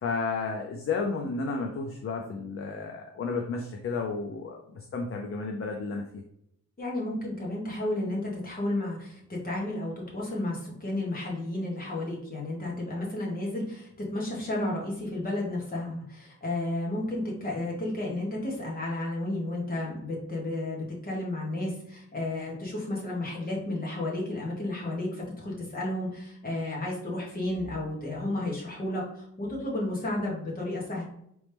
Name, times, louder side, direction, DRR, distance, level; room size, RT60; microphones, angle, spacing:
voice 1, 0.0-6.2, left 4 dB, 45° left, 2 dB, 0.5 m, -32 dB
voice 2, 6.8-31.0, left 1 dB, 30° left, -3 dB, 1.3 m, -32 dB
4.0 x 3.1 x 3.4 m, 0.72 s
wide cardioid pair, 180°, 31 cm